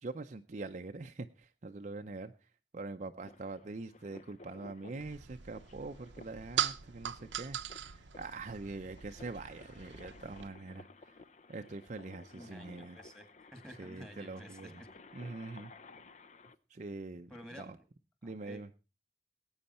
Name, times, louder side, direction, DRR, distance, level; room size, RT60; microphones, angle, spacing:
voice 1, 0.0-2.3 2.7-11.2 11.5-13.0 13.8-14.8 15.1-15.7 16.7-17.3 17.6-17.8 18.2-18.7, right 3 dB, 40° right, 7 dB, 0.5 m, -44 dB
sound 1, 3.2-16.6, left 3 dB, 40° left, 0.6 m, -56 dB
sound 2, 5.0-10.5, right 9 dB, 85° right, 0.7 m, -40 dB
voice 2, 12.3-14.9 17.3-17.9 18.2-18.6, equal, 5° left, 8 dB, 2.0 m, -51 dB
18.5 x 8.8 x 4.2 m, 0.31 s
head